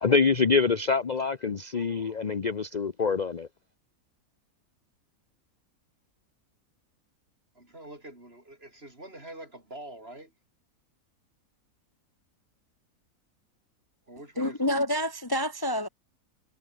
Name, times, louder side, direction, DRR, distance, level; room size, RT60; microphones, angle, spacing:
voice 1, 0.0-3.5, left 5 dB, 35° left, 0.8 m, -25 dB
voice 2, 7.6-10.3 14.1-14.7, right 1 dB, 40° right, 6.8 m, -45 dB
voice 3, 14.4-15.9, left 1 dB, 15° left, 1.5 m, -28 dB
omnidirectional pair, 1.5 m